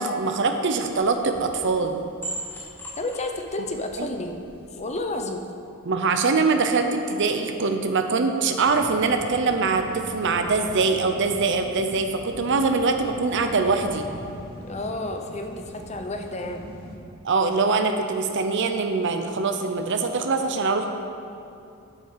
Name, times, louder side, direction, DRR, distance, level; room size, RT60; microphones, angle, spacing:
voice 1, 0.0-2.0 4.0-4.1 5.9-14.1 17.2-20.9, right 4 dB, 60° right, 6 dB, 0.7 m, -23 dB
sound 1, 0.9-5.2, right 1 dB, 10° left, 1.5 m, -40 dB
voice 2, 3.0-5.4 14.6-16.6, left 2 dB, 35° left, 5 dB, 0.7 m, -31 dB
sound 2, 8.6-17.0, equal, 50° left, 1.9 m, -41 dB
8.2 x 7.1 x 6.6 m, 2.7 s
head